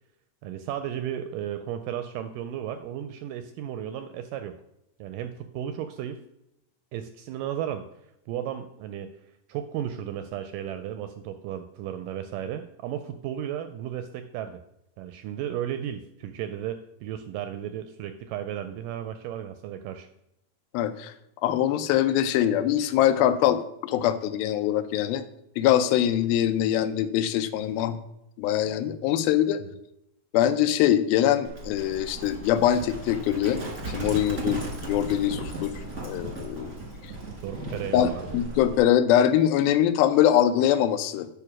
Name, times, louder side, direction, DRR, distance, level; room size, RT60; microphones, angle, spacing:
voice 1, 0.4-4.6 5.0-6.2 6.9-7.9 8.3-9.1 9.5-14.6 15.0-20.1 29.6-29.7 37.3-38.4, right 10 dB, 80° right, 9 dB, 1.9 m, -34 dB
voice 2, 20.7-21.1 21.4-25.2 25.6-28.0 28.4-29.6 30.3-35.7 36.0-36.7 37.9-41.3, left 11 dB, 85° left, 11 dB, 2.5 m, -23 dB
Livestock farm animals working animals, 31.4-38.8, right 2 dB, 40° right, 1.0 m, -36 dB
9.6 x 5.0 x 5.9 m, 0.83 s
omnidirectional pair, 4.2 m